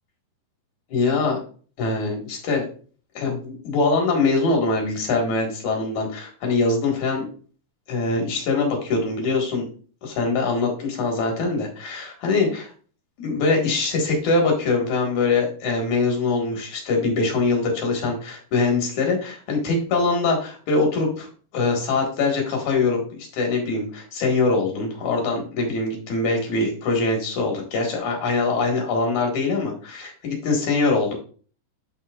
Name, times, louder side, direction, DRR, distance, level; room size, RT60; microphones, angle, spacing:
voice 1, 0.9-1.4 1.8-2.7 3.1-7.3 7.9-9.7 10.0-12.7 13.2-21.3 21.5-31.1, left 3 dB, 65° left, 1 dB, 3.0 m, -23 dB
11.5 x 4.3 x 2.4 m, 0.40 s
omnidirectional pair, 3.9 m